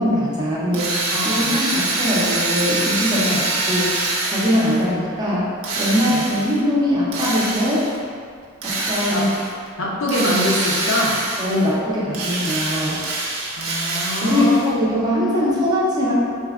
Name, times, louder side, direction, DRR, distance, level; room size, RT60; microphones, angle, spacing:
voice 1, 0.0-1.0 1.2-3.4 3.7-5.5 5.8-7.8 8.6-9.3 11.4-13.0 14.2-16.1, left 1 dB, 20° right, -7 dB, 0.4 m, -21 dB
Drill, 0.7-4.9 5.6-6.6 7.1-8.0 8.6-9.5 10.1-11.7 12.1-14.7, right 2 dB, 85° right, 0.5 m, -25 dB
voice 2, 1.1-1.5 3.2-3.4 6.0-6.2 9.1-9.3 9.8-11.2 13.6-14.6, left 1 dB, 65° left, -4 dB, 0.5 m, -23 dB
3.2 x 2.1 x 2.3 m, 2.1 s
head